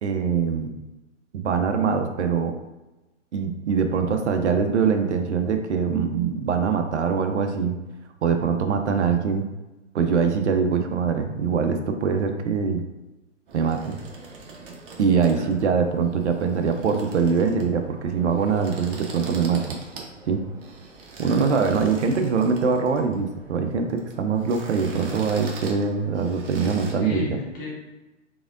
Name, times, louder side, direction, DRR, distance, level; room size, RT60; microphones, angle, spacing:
voice 1, 0.0-0.7 1.3-2.5 3.3-7.8 8.2-9.5 9.9-12.8 13.5-14.0 15.0-19.6 20.3-20.4 21.2-27.4, right 5 dB, 65° right, 6 dB, 0.6 m, -23 dB
sound 1, 13.5-26.9, right 3 dB, 45° right, 1.1 m, -42 dB
voice 2, 26.9-27.7, left 3 dB, 25° left, -3 dB, 1.4 m, -33 dB
4.9 x 3.5 x 2.5 m, 1.1 s
figure-of-eight pair, 120°, 38 cm